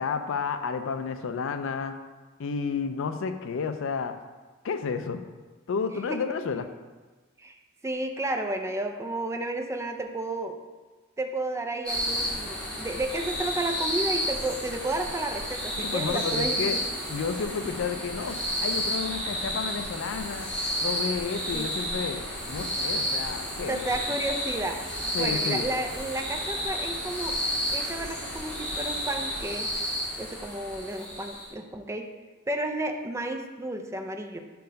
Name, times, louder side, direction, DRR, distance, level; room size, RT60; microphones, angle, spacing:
voice 1, 0.0-1.9 2.4-4.1 4.6-5.2 5.7-6.7 15.8-16.8 17.1-20.5 20.8-23.8 25.1-25.7, left 5 dB, 65° left, 9 dB, 0.4 m, -31 dB
voice 2, 7.8-10.6 11.2-16.8 21.5-21.7 23.7-24.8 25.2-27.4 27.7-29.7 30.2-32.1 32.5-34.4, right 1 dB, 15° right, 5 dB, 0.4 m, -32 dB
sound 1, 11.8-31.5, equal, 5° left, 1.8 m, -31 dB
5.3 x 4.6 x 5.1 m, 1.3 s
head